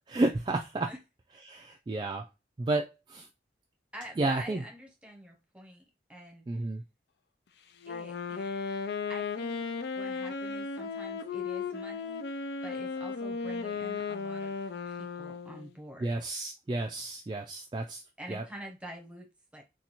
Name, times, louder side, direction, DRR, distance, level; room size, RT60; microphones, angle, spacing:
voice 1, 0.1-0.9 1.4-2.2 2.6-3.3 4.2-4.6 6.5-6.8 16.0-18.0 18.3-18.4, right 2 dB, 25° right, 0.3 m, -31 dB
voice 2, 3.9-5.8 6.1-6.5 7.9-8.6 9.1-9.7 9.9-14.6 14.9-16.1 18.2-19.6, equal, 5° right, 0.7 m, -47 dB
Wind instrument woodwind instrument, 7.8-15.7, left 5 dB, 70° left, 0.4 m, -35 dB
4.1 x 2.3 x 2.9 m
head